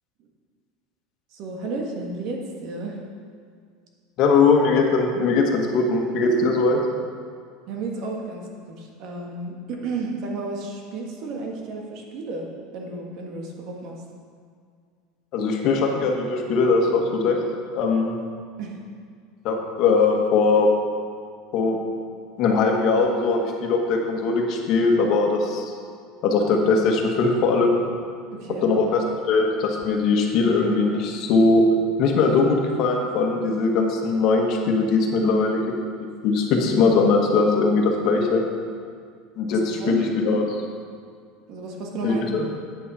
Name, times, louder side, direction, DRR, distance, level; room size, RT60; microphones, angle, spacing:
voice 1, 1.3-3.0 7.7-12.5 12.7-14.0 18.6-18.8 28.3-28.7 39.5-40.1 41.5-42.2, right 3 dB, 55° right, 1 dB, 1.6 m, -32 dB
voice 2, 4.2-6.8 15.3-17.4 17.7-18.1 19.4-20.7 21.5-21.8 22.4-25.6 26.2-27.8 28.6-31.7 32.0-35.6 36.2-38.4 39.4-40.4 42.0-42.5, left 4 dB, 50° left, 1 dB, 1.4 m, -20 dB
9.2 x 8.5 x 4.2 m, 2.1 s
supercardioid pair, 130°, 0 cm